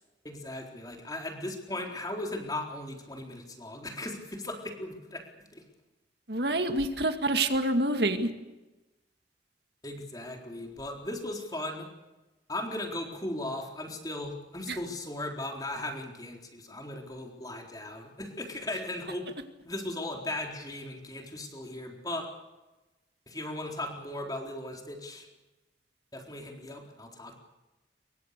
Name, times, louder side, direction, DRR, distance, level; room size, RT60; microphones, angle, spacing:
voice 1, 0.2-5.2 5.5-5.6 9.8-11.9 12.5-19.3 19.6-22.3 23.3-25.3 26.1-27.4, left 1 dB, 20° left, 2 dB, 4.0 m, -37 dB
voice 2, 6.3-8.3 14.7-14.8, right 2 dB, 60° right, 6 dB, 2.1 m, -27 dB
27.5 x 23.5 x 6.8 m, 1.1 s
head